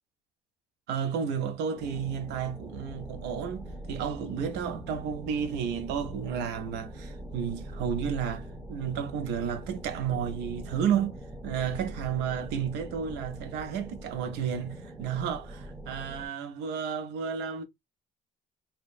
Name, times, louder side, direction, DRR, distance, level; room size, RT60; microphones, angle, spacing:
voice 1, 0.9-11.2 11.4-17.6, right 7 dB, 85° right, 0.6 m, -32 dB
sound 1, 1.7-16.3, right 1 dB, 15° right, 0.8 m, -43 dB
2.8 x 2.1 x 2.4 m
cardioid pair, 110°, 17 cm